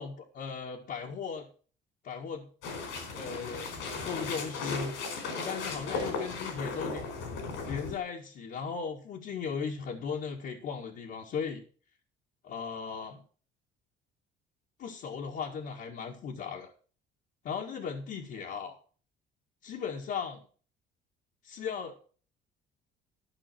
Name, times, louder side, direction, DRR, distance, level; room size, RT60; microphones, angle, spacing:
voice 1, 0.0-1.5 2.0-2.5 3.1-3.7 4.0-4.9 5.4-7.2 7.7-11.6 12.4-13.2 14.8-16.7 17.4-18.7 19.6-20.4 21.4-21.9, left 6 dB, 60° left, -3 dB, 1.9 m, -37 dB
sound 1, 2.6-8.0, left 4 dB, 85° left, 4.5 m, -36 dB
13.0 x 5.7 x 6.0 m, 0.40 s
cardioid pair, 115°, 19 cm